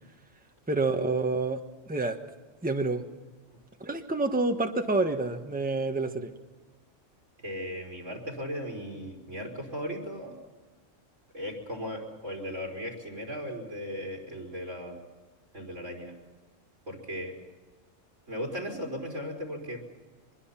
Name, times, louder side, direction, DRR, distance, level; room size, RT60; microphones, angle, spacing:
voice 1, 0.7-1.6 1.9-2.2 2.6-3.0 3.8-6.3, right 3 dB, 5° right, 5 dB, 1.3 m, -28 dB
voice 2, 7.4-10.4 11.3-15.0 15.5-16.1 16.9-17.4 18.3-19.8, equal, 80° right, 3 dB, 4.9 m, -37 dB
24.5 x 21.5 x 5.8 m, 1.3 s
omnidirectional pair, 1.3 m